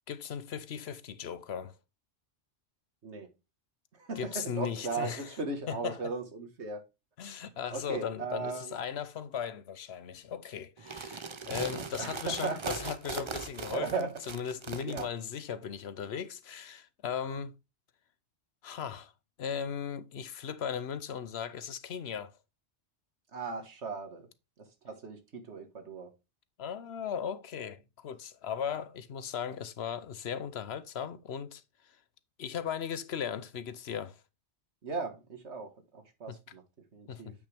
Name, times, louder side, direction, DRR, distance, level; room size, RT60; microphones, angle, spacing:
voice 1, 0.1-1.8 4.2-5.3 5.7-6.1 7.2-17.5 18.6-19.1 19.4-22.3 26.6-32.0 32.4-34.2 36.3-36.4 37.1-37.2, left 8 dB, 70° left, 1.0 m, -37 dB
voice 2, 3.9-6.8 7.7-8.7 12.0-12.8 13.7-14.1 14.9-15.1 23.3-24.3 24.6-26.1 34.8-36.6 36.9-37.3, right 4 dB, 75° right, 1.9 m, -37 dB
sound 1, 10.8-15.1, right 4 dB, 30° right, 0.6 m, -39 dB
9.0 x 5.4 x 3.4 m
omnidirectional pair, 1.2 m